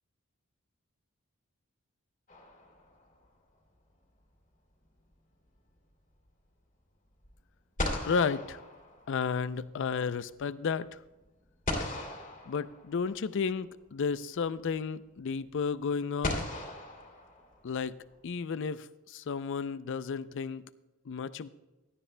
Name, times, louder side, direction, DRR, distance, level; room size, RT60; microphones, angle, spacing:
sound 1, 2.3-3.2 7.2-7.3 7.8-9.5 11.7-13.2 14.6-14.7 16.2-17.9, left 1 dB, 40° left, 2.3 m, -37 dB
voice 1, 8.0-8.6 9.1-10.9 12.5-16.5 17.6-17.9 18.2-20.6 21.1-21.5, left 5 dB, 60° left, 15 dB, 0.4 m, -32 dB
16.5 x 12.5 x 2.2 m, 1.1 s
head